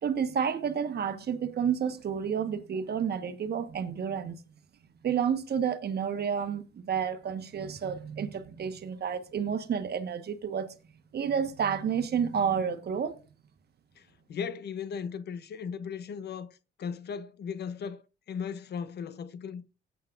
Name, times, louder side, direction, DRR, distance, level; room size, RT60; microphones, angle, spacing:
voice 1, 0.0-4.4 5.0-10.7 11.1-13.2, right 7 dB, 55° right, 1.3 m, -30 dB
voice 2, 14.0-19.6, left 6 dB, 55° left, 0.8 m, -37 dB
18.0 x 8.4 x 2.5 m
cardioid pair, 90°, 20 cm